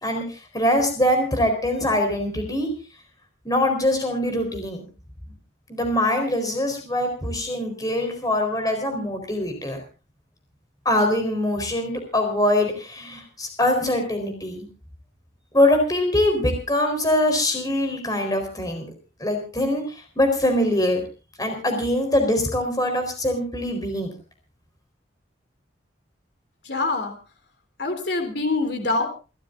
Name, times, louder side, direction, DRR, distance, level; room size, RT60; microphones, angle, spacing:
voice 1, 0.0-2.7 3.4-4.8 5.7-9.8 10.8-14.7 15.5-18.9 19.2-19.8 20.2-21.0 21.4-24.1, left 1 dB, 20° left, 5 dB, 4.2 m, -23 dB
voice 2, 26.7-27.2 27.8-29.1, left 3 dB, 60° left, 6 dB, 3.4 m, -25 dB
29.5 x 14.0 x 2.6 m, 0.33 s
head